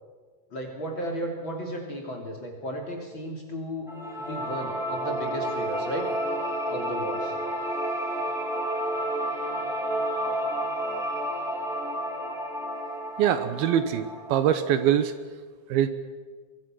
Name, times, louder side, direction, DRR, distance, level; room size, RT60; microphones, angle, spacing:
voice 1, 0.5-3.9 4.2-6.1 6.7-7.3, equal, 30° left, 1 dB, 3.0 m, -34 dB
sound 1, 3.9-14.9, right 1 dB, ahead, 3.4 m, -31 dB
voice 2, 13.2-15.1 15.7-15.9, right 10 dB, 70° right, 11 dB, 2.6 m, -23 dB
23.5 x 23.5 x 6.2 m, 1.5 s
omnidirectional pair, 5.0 m